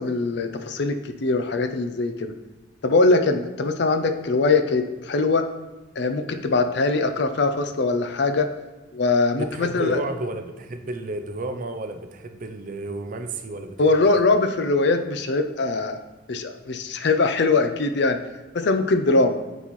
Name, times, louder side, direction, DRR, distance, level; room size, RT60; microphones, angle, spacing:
voice 1, 0.0-2.3 2.8-5.5 6.0-8.5 8.9-10.0 13.8-16.0 16.3-18.2 18.5-19.4, left 3 dB, 55° left, 8 dB, 0.5 m, -22 dB
voice 2, 9.3-14.2, right 2 dB, 45° right, 7 dB, 0.5 m, -32 dB
9.0 x 4.2 x 3.1 m, 1.2 s
head